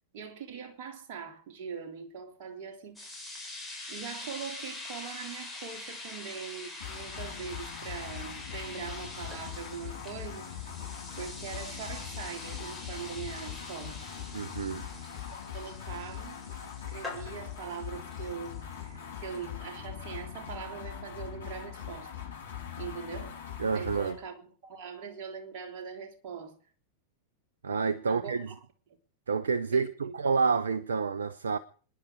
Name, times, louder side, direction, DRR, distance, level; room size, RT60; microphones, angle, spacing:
voice 1, 0.1-3.2 3.9-10.6 11.2-14.0 14.8-15.1 15.5-16.4 16.9-22.1 22.8-23.4 23.7-26.6 28.0-28.5 28.9-29.0 29.7-30.1, right 6 dB, 45° right, 3.3 m, -42 dB
sound 1, 3.0-19.5, left 2 dB, ahead, 7.3 m, -45 dB
sound 2, 6.8-24.2, left 9 dB, 65° left, 7.6 m, -42 dB
HEavy Guitar, 6.8-14.8, left 6 dB, 20° left, 4.7 m, -55 dB
voice 2, 14.3-14.9 23.6-24.1 27.6-28.5 29.3-31.6, right 5 dB, 70° right, 0.7 m, -29 dB
25.5 x 11.0 x 4.9 m
figure-of-eight pair, 90°, 0 cm